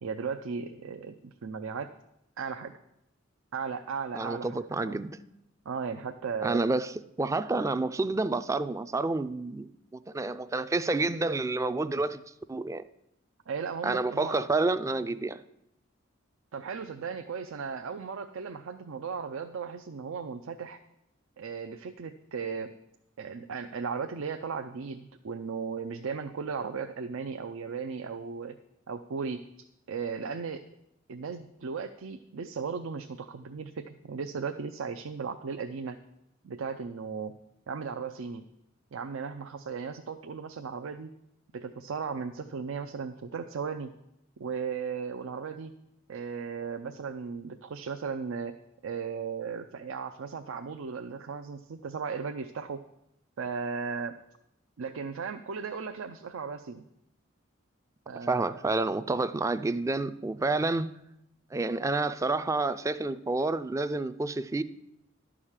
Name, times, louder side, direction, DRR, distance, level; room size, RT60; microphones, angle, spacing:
voice 1, 0.0-1.9 2.4-2.7 3.5-5.0 5.7-6.6 13.5-14.4 16.5-20.8 21.4-22.7 23.2-28.6 28.9-29.5 29.9-30.7 31.1-36.0 36.4-37.3 37.7-38.4 38.9-41.1 41.5-43.9 44.4-45.7 46.1-48.6 48.8-52.8 53.4-54.2 54.8-56.8 58.1-58.5, right 5 dB, 90° right, 0.5 m, -36 dB
voice 2, 4.1-5.1 6.4-6.9 7.2-9.7 9.9-12.2 12.5-12.8 13.8-15.4 58.3-60.9 61.5-64.6, right 3 dB, 15° right, 0.3 m, -29 dB
11.5 x 4.9 x 7.2 m
head